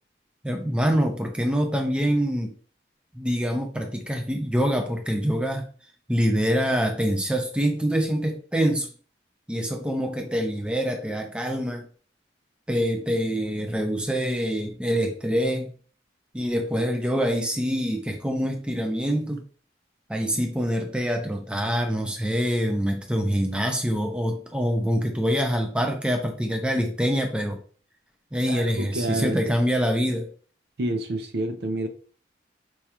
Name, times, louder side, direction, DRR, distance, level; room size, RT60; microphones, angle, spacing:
voice 1, 0.4-2.5 3.1-5.7 6.1-8.9 9.5-11.8 12.7-15.7 16.3-19.4 20.1-27.6 28.3-30.3, equal, 5° right, 3 dB, 0.4 m, -25 dB
voice 2, 28.5-29.4 30.8-31.9, right 1 dB, 60° right, 7 dB, 0.5 m, -28 dB
4.6 x 2.3 x 2.8 m, 0.42 s
head